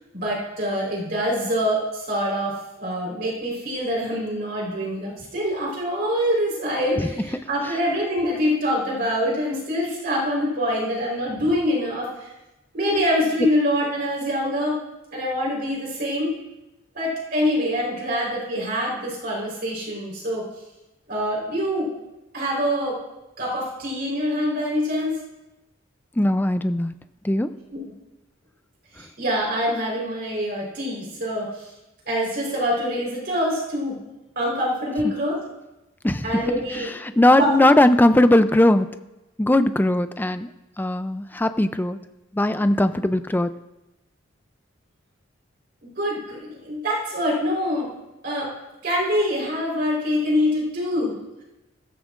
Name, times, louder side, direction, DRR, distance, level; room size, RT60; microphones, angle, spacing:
voice 1, 0.1-12.3 12.7-14.8 15.1-16.3 16.9-20.5 21.1-21.9 22.3-23.0 23.4-25.1 27.7-27.8 28.9-31.7 32.1-34.0 34.4-35.4 36.2-36.9 37.4-37.5 46.0-47.9 48.2-48.5 48.8-51.2, equal, 50° right, -3 dB, 4.0 m, -25 dB
voice 2, 26.2-26.9 27.2-27.5 36.0-36.4 37.0-38.9 39.4-40.5 40.8-42.0 42.3-43.5, left 1 dB, 10° left, 11 dB, 0.4 m, -19 dB
16.0 x 14.0 x 2.5 m, 1.0 s
head